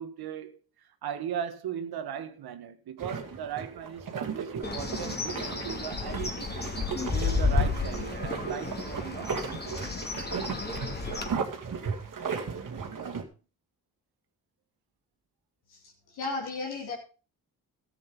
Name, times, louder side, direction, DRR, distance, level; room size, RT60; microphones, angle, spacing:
voice 1, 0.0-6.6 7.1-9.4, right 8 dB, 80° right, 1.6 m, -37 dB
sound 1, 3.0-13.2, right 6 dB, 55° right, 2.4 m, -36 dB
Bird, 4.6-11.3, left 4 dB, 25° left, 2.9 m, -32 dB
voice 2, 15.7-16.9, left 3 dB, 80° left, 4.2 m, -35 dB
13.5 x 8.3 x 5.3 m
supercardioid pair, 55°, 38 cm